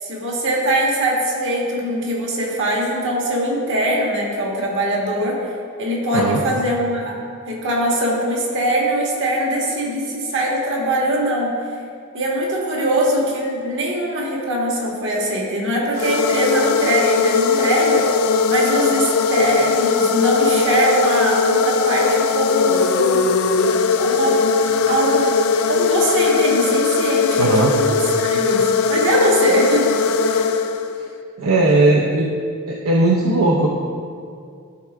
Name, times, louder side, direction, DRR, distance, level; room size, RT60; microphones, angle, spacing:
voice 1, 0.0-5.5 5.8-7.2 7.5-11.6 12.1-18.1 18.5-23.2 24.0-24.4 24.7-25.3 25.7-30.5, right 1 dB, 60° right, -3 dB, 1.7 m, -22 dB
sound 1, 15.9-31.1, left 5 dB, 70° left, 0.4 m, -19 dB
voice 2, 27.4-27.7 31.0-31.1 31.4-32.3 32.7-33.7, right 2 dB, 75° right, -2 dB, 0.7 m, -17 dB
12.5 x 4.5 x 3.6 m, 2.3 s
head